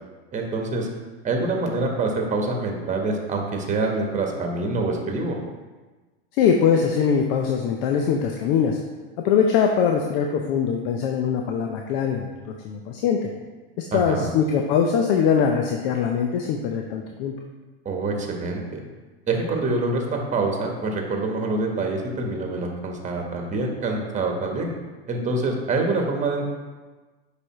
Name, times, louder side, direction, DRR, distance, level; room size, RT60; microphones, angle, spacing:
voice 1, 0.3-0.9 1.2-5.4 13.9-14.3 17.8-18.8 19.3-24.7 25.1-26.5, right 3 dB, 20° right, 2 dB, 1.2 m, -26 dB
voice 2, 6.4-8.8 9.2-13.2 13.9-17.3, left 7 dB, 55° left, 2 dB, 0.7 m, -22 dB
6.8 x 4.9 x 3.1 m, 1.3 s
hypercardioid pair, 105°, 32 cm